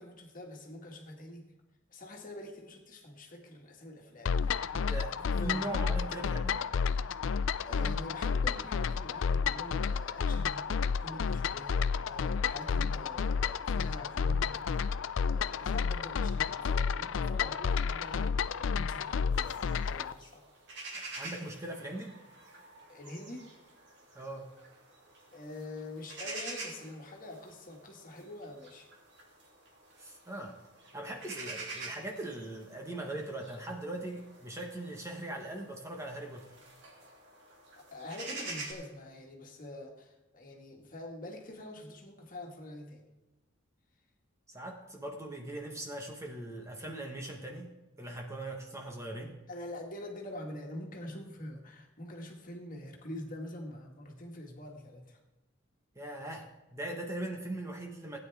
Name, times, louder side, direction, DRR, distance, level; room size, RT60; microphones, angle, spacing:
voice 1, 0.0-1.5 1.9-5.9 6.2-6.3 7.0-11.8 12.0-14.5 15.2-20.4 22.9-23.5 25.3-28.9 37.8-43.0 49.5-55.2, left 1 dB, 40° left, 1 dB, 1.9 m, -45 dB
sound 1, 4.3-20.1, left 6 dB, 65° left, 0.4 m, -31 dB
voice 2, 4.7-6.6 20.9-22.2 24.1-24.5 30.0-30.6 30.9-36.5 44.5-49.4 55.9-58.2, right 1 dB, 15° right, 0 dB, 1.3 m, -40 dB
sound 2, 19.3-38.7, right 3 dB, 60° right, 2.7 m, -47 dB
16.5 x 9.5 x 3.5 m, 1.1 s
head